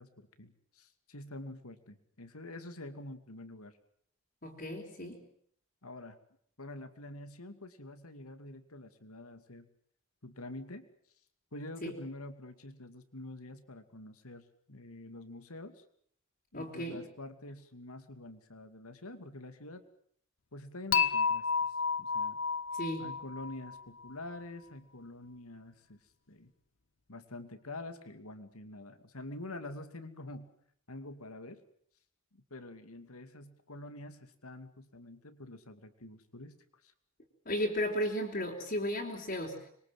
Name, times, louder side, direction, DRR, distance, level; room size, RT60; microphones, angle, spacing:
voice 1, 0.0-3.8 5.8-6.2 6.6-9.7 10.2-10.9 11.5-15.8 16.5-19.8 20.5-22.4 23.0-26.0 26.3-26.5 27.1-30.5 30.9-31.6 32.3-36.9, left 2 dB, 85° left, 9 dB, 2.6 m, -47 dB
voice 2, 4.4-5.2 11.8-11.9 16.5-17.0 22.7-23.1 37.5-39.7, equal, 40° left, -2 dB, 4.0 m, -35 dB
Dishes pots and pans / Chink clink, 20.9-24.1, left 6 dB, 60° left, 1.0 m, -31 dB
25.5 x 23.0 x 7.8 m, 0.65 s
head